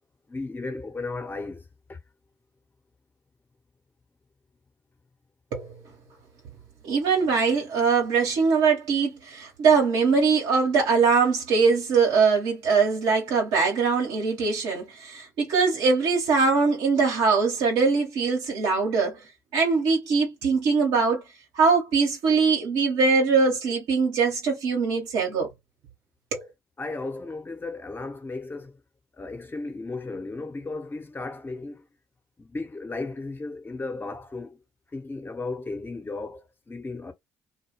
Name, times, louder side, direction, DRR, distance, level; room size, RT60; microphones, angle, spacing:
voice 1, 0.3-2.0 26.8-28.8 29.1-31.9 32.4-34.6 34.9-37.1, left 3 dB, 25° left, 1.1 m, -35 dB
voice 2, 6.8-19.2 19.5-21.2 21.5-25.5 26.3-26.5, right 5 dB, 70° right, 1.0 m, -22 dB
2.3 x 2.2 x 2.9 m
hypercardioid pair, 50°, 8 cm